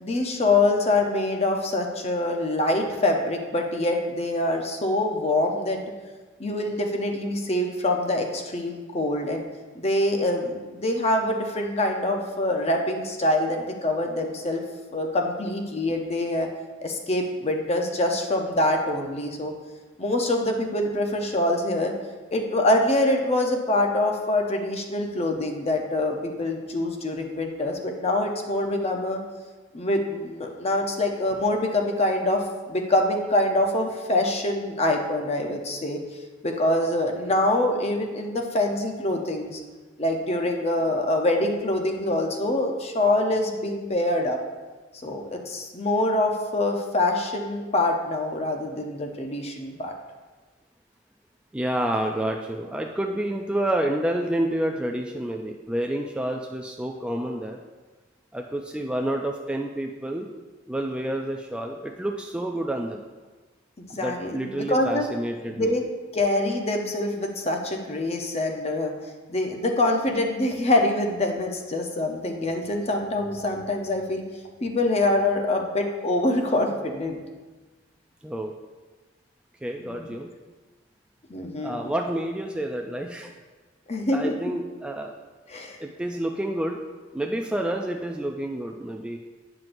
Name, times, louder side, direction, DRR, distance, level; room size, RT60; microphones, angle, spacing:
voice 1, 0.0-5.8 6.4-9.4 9.7-14.6 14.9-16.5 16.8-19.5 20.0-21.9 22.3-29.2 29.7-32.4 32.7-36.0 36.4-39.6 40.0-44.4 45.0-49.9 63.8-65.1 65.5-65.8 66.1-68.9 69.3-74.2 74.6-77.2 79.9-80.1 81.3-81.8 83.9-84.3 85.5-85.8, left 1 dB, 35° left, 3 dB, 0.7 m, -25 dB
voice 2, 51.5-57.6 58.3-60.3 60.7-63.0 63.9-65.8 78.2-78.5 79.6-80.3 81.6-83.3 84.1-85.1 85.8-86.8 87.1-89.2, right 1 dB, 5° right, 1 dB, 0.3 m, -29 dB
9.3 x 5.9 x 2.6 m, 1.3 s
head